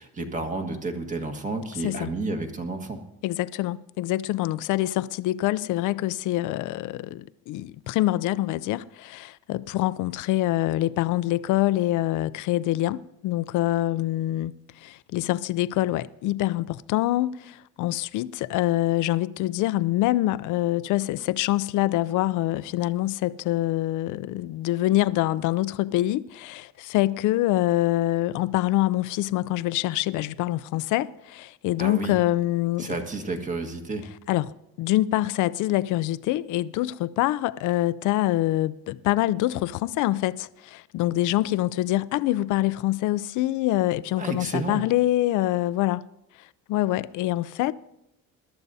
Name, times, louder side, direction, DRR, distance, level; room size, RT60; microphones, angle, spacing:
voice 1, 0.0-3.0 31.8-32.1 32.8-34.1 44.2-44.8, right 3 dB, 25° right, 1.5 m, -31 dB
voice 2, 3.2-33.0 34.3-46.0 46.7-47.7, left 15 dB, 65° left, 0.5 m, -25 dB
21.0 x 12.5 x 2.7 m
cardioid pair, 130°, 33 cm